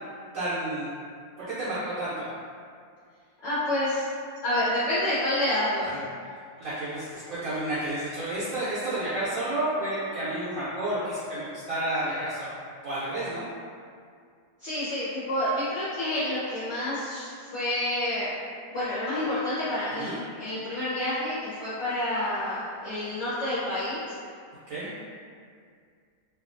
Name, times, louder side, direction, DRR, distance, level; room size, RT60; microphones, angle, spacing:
voice 1, 0.3-0.9 1.4-2.2 6.6-12.5 12.8-13.5 20.0-20.2 24.7-24.9, right 1 dB, 60° right, -11 dB, 0.9 m, -30 dB
voice 2, 3.4-4.1 4.4-6.0 14.6-18.3 18.7-24.0, left 1 dB, 55° left, -12 dB, 0.9 m, -28 dB
2.8 x 2.4 x 2.5 m, 2.2 s
omnidirectional pair, 1.9 m